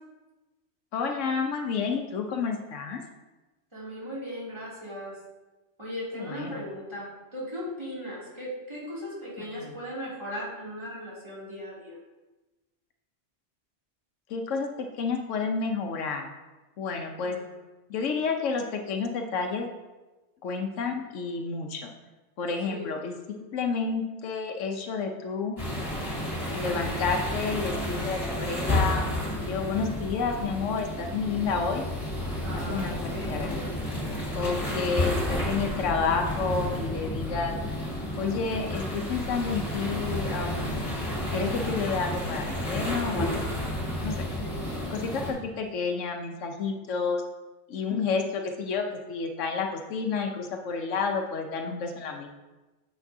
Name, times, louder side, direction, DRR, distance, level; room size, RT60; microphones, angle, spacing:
voice 1, 0.9-3.0 6.1-6.6 9.6-9.7 14.3-16.3 16.8-17.4 17.9-19.7 20.4-21.9 22.4-25.5 26.5-29.1 29.4-31.8 32.5-33.8 34.4-37.5 38.2-40.8 41.3-43.4 44.0-44.1 44.9-47.2 47.7-52.3, left 5 dB, 85° left, 4 dB, 1.0 m, -30 dB
voice 2, 3.7-5.2 5.8-12.0 17.2-17.6 22.7-22.9 32.4-33.7 34.4-35.2 44.4-44.7, equal, 20° right, -8 dB, 2.6 m, -38 dB
sound 1, 25.6-45.3, left 1 dB, 25° left, 2.2 m, -31 dB
8.3 x 6.8 x 2.7 m, 1.1 s
omnidirectional pair, 1.3 m